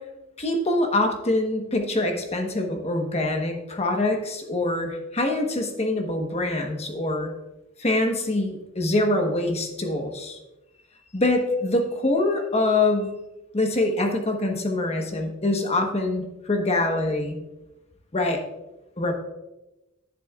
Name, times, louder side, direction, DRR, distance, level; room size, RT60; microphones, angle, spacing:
voice 1, 0.4-7.3 7.8-10.4 11.1-13.1 13.5-17.4 18.1-18.4 19.0-19.1, left 2 dB, 30° left, 3 dB, 1.2 m, -24 dB
10.0 x 10.0 x 2.4 m, 1.0 s
head